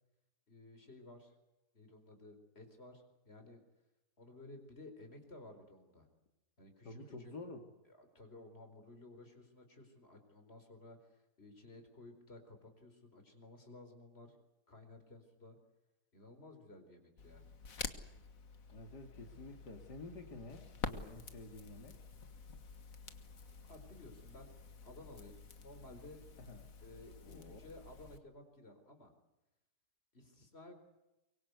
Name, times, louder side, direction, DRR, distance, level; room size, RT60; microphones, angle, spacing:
voice 1, 0.5-1.3 1.7-3.6 4.2-6.1 6.6-7.3 7.9-14.4 14.7-15.6 16.1-17.4 23.6-24.5 24.8-26.2 26.8-29.1 30.1-30.7, left 2 dB, 35° left, 5 dB, 4.8 m, -55 dB
voice 2, 6.8-7.7 18.7-22.0 26.4-26.7 27.2-27.6, left 2 dB, 80° left, 4 dB, 3.0 m, -50 dB
Crackle, 17.2-28.2, left 5 dB, 55° left, 1.9 m, -49 dB
24.0 x 23.5 x 8.2 m, 0.97 s
omnidirectional pair, 1.8 m